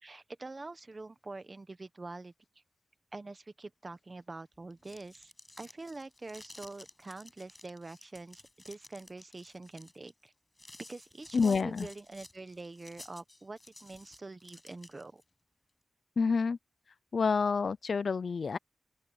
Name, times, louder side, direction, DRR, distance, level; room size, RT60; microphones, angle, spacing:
voice 1, 0.0-2.3 3.1-5.3 5.6-10.3 10.8-15.2, right 3 dB, 30° right, 1.1 m, -45 dB
sound 1, 4.6-15.2, left 2 dB, 20° left, 7.2 m, -54 dB
voice 2, 11.3-11.9 16.2-16.6 17.1-18.6, left 5 dB, 60° left, 0.4 m, -28 dB
open air
wide cardioid pair, 155°, 0 cm